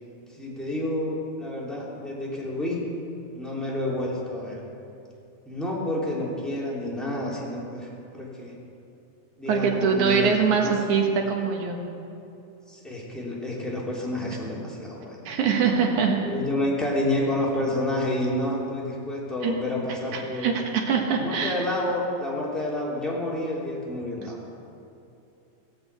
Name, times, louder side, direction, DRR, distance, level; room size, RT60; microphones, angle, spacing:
voice 1, 0.3-2.8 3.3-4.6 5.4-8.5 9.4-10.7 12.7-15.2 16.2-20.5 21.1-24.4, left 1 dB, ahead, -5 dB, 2.5 m, -29 dB
voice 2, 9.5-11.8 15.3-16.2 19.4-19.6 20.1-21.5, right 6 dB, 85° right, 2 dB, 3.0 m, -23 dB
17.5 x 7.8 x 8.1 m, 2.7 s
omnidirectional pair, 3.3 m